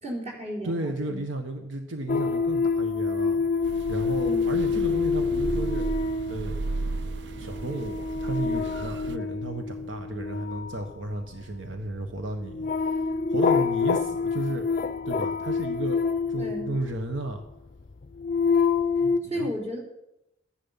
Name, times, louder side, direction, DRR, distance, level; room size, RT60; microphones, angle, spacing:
voice 1, 0.0-1.2 4.2-4.9 16.4-16.8 19.2-19.8, equal, 35° right, -1 dB, 4.1 m, -34 dB
voice 2, 0.6-5.9 6.2-7.1 7.3-14.7 15.0-17.4 19.0-19.5, right 2 dB, 80° right, 5 dB, 1.2 m, -34 dB
sound 1, 2.1-17.2 17.9-19.2, left 5 dB, 45° left, 0.4 m, -27 dB
sound 2, 3.6-9.2, right 2 dB, 60° right, 0.5 m, -35 dB
14.5 x 10.5 x 5.7 m, 0.84 s
head